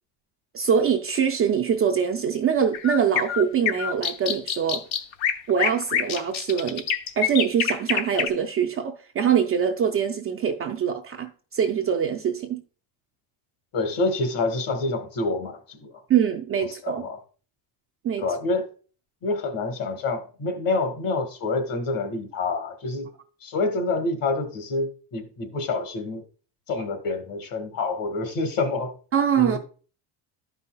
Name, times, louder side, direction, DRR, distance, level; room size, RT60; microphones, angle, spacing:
voice 1, 0.5-4.8 5.5-6.9 7.2-12.6 16.1-17.1 18.0-18.2 29.1-29.6, right 7 dB, 35° right, 0.4 m, -23 dB
sound 1, 2.7-8.3, left 8 dB, 80° left, 1.0 m, -25 dB
voice 2, 13.7-15.9 16.8-17.2 18.2-18.7 19.2-23.1 23.4-26.2 26.7-28.9 29.4-29.6, left 3 dB, 45° left, 1.5 m, -27 dB
12.5 x 5.5 x 2.2 m
cardioid pair, 155°, 46 cm